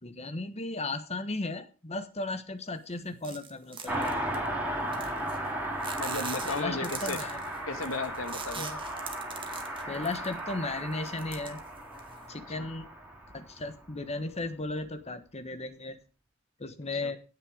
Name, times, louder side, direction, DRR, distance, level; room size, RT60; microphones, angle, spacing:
voice 1, 0.0-4.2 6.4-7.4 8.6-8.8 9.9-11.6 12.3-12.9 13.3-16.0 16.6-17.2, left 2 dB, 30° left, 10 dB, 1.3 m, -35 dB
sound 1, 3.2-4.5 4.9-5.5 5.8-10.5 10.9-12.2, right 6 dB, 25° right, 2.2 m, -42 dB
Car passing by, 3.9-13.8 14.1-14.2, right 1 dB, 10° right, 4.1 m, -35 dB
voice 2, 6.0-7.2 7.7-8.7 12.6-12.7 17.0-17.1, left 3 dB, 75° left, 9 dB, 1.8 m, -35 dB
17.5 x 6.7 x 5.0 m, 0.34 s
head